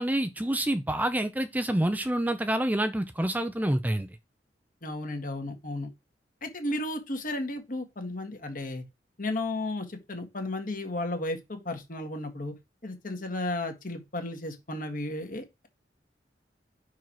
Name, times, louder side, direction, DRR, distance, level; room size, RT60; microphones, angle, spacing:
voice 1, 0.0-4.1, right 1 dB, 10° right, 0.5 m, -27 dB
voice 2, 4.8-5.9 6.4-8.8 9.2-12.5 12.8-15.7, left 2 dB, 50° left, 1.8 m, -34 dB
5.9 x 4.7 x 4.6 m
head